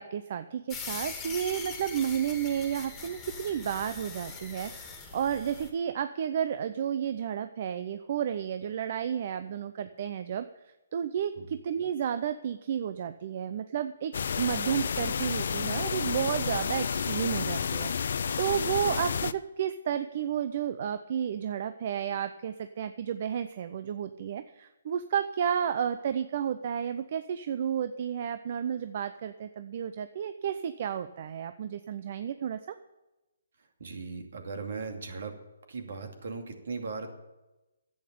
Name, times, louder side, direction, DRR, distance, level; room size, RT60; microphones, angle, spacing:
voice 1, 0.0-10.5 10.9-32.8, right 9 dB, 45° right, 11 dB, 0.6 m, -32 dB
sound 1, 0.7-5.7, left 5 dB, 15° left, 2.3 m, -41 dB
sound 2, 14.1-19.3, left 6 dB, 60° left, 0.5 m, -31 dB
voice 2, 33.8-35.4 35.7-37.1, right 4 dB, 65° right, 4 dB, 2.5 m, -38 dB
10.5 x 8.7 x 8.6 m, 1.0 s
hypercardioid pair, 155°, 0 cm